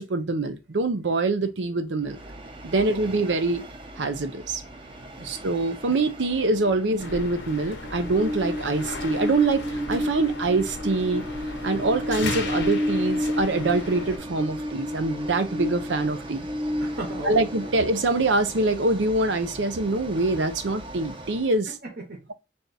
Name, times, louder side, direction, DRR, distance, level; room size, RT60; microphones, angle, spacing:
voice 1, 0.0-2.2 2.6-3.6 4.0-4.6 5.2-11.2 11.6-16.5 17.3-21.7, right 2 dB, 90° right, 0.6 m, -25 dB
Train, 2.0-21.5, equal, 30° right, 0.7 m, -33 dB
voice 2, 2.8-3.1 5.2-5.3 11.8-12.0 16.8-17.7 21.7-22.3, right 1 dB, 60° right, 1.0 m, -37 dB
sound 1, 7.0-14.2, left 3 dB, 75° left, 0.8 m, -37 dB
3.5 x 2.7 x 4.0 m
head